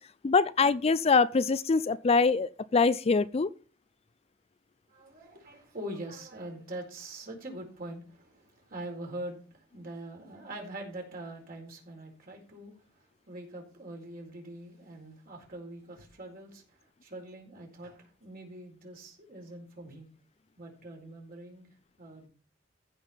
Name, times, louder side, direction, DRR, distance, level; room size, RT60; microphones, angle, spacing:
voice 1, 0.2-3.5, left 4 dB, 30° left, 0.4 m, -24 dB
voice 2, 4.9-20.1 20.6-22.3, right 1 dB, 50° right, 4.3 m, -43 dB
15.0 x 5.3 x 5.7 m
head